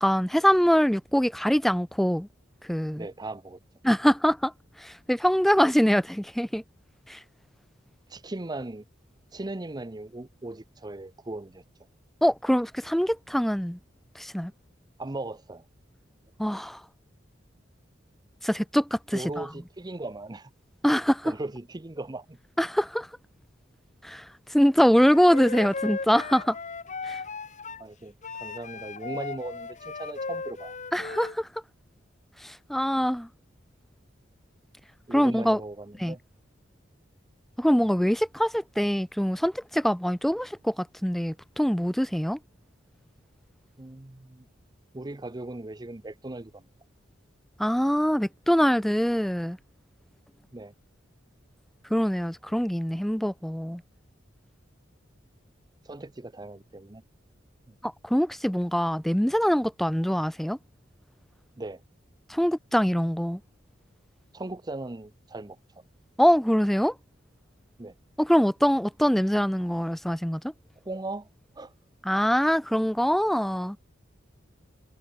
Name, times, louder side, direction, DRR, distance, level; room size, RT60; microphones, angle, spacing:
voice 1, 0.0-2.3 2.7-3.0 3.8-4.5 4.8-6.6 7.1-7.2 12.2-13.8 14.2-14.5 16.4-16.8 18.4-19.2 20.8-21.3 22.6-23.1 24.0-24.2 24.5-26.6 27.1-27.2 30.9-31.5 32.4-33.3 35.1-35.6 36.0-36.1 37.6-40.7 41.0-42.4 47.6-49.6 51.9-53.8 57.8-60.6 62.3-63.4 66.2-66.9 68.2-70.5 72.1-73.8, equal, ahead, 0.3 m, -24 dB
voice 2, 3.0-3.6 8.1-8.8 9.3-11.6 15.0-15.6 19.1-20.5 21.2-22.4 27.8-30.8 35.1-36.2 43.8-44.5 44.9-46.6 50.5-50.7 55.8-57.0 57.7-57.8 61.6-61.8 64.3-65.6 67.8-68.0 70.8-71.3 71.6-71.7, right 2 dB, 20° right, 0.7 m, -38 dB
Wind instrument woodwind instrument, 25.1-27.8 28.2-31.3, left 4 dB, 40° left, 1.4 m, -37 dB
head